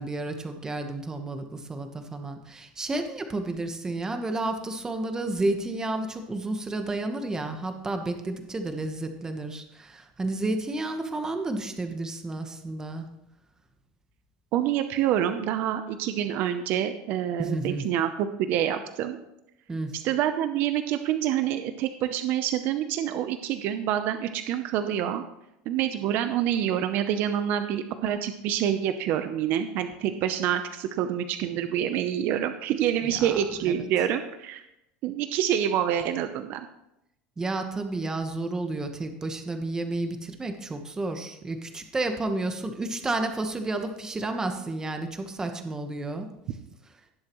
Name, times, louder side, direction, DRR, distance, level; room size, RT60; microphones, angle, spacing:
voice 1, 0.0-13.1 17.4-17.9 19.7-19.9 33.0-33.9 37.4-46.3, right 2 dB, 15° right, 6 dB, 1.2 m, -31 dB
voice 2, 14.5-19.2 20.0-25.2 25.7-34.6 35.0-36.7, right 10 dB, 55° right, 9 dB, 0.7 m, -27 dB
17.0 x 7.5 x 3.1 m, 0.84 s
supercardioid pair, 120°, 4 cm